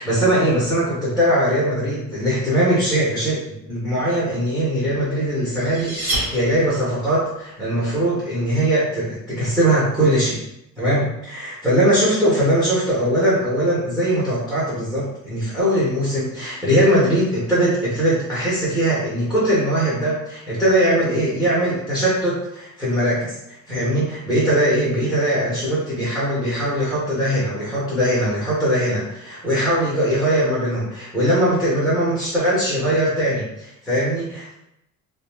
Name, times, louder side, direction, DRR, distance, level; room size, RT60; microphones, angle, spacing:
voice 1, 0.0-10.4 10.8-23.4 23.7-34.5, right 1 dB, ahead, -8 dB, 0.6 m, -20 dB
sound 1, 5.4-7.1, right 1 dB, 45° right, 1.0 m, -28 dB
2.6 x 2.1 x 3.1 m, 0.83 s
cardioid pair, 175°, 31 cm